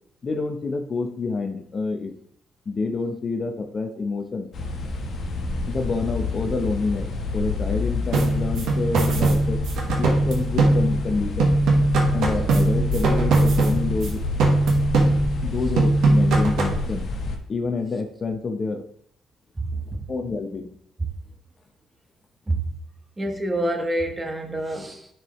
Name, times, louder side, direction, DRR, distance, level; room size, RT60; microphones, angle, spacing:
voice 1, 0.2-2.1 2.7-4.5 5.7-9.6 10.0-11.5 12.1-14.2 15.4-17.1 17.5-18.9 19.7-20.7, left 4 dB, 40° left, 5 dB, 0.8 m, -28 dB
sound 1, 4.5-17.4, left 2 dB, 60° left, 1.2 m, -28 dB
sound 2, 8.1-11.1 11.4-14.1 14.4-15.5 15.8-16.8, right 2 dB, 80° right, 1.3 m, -20 dB
voice 2, 19.6-20.0 22.5-22.7 23.2-25.1, right 1 dB, 20° right, 5 dB, 1.2 m, -27 dB
10.5 x 4.7 x 3.1 m, 0.66 s
cardioid pair, 90°, 0 cm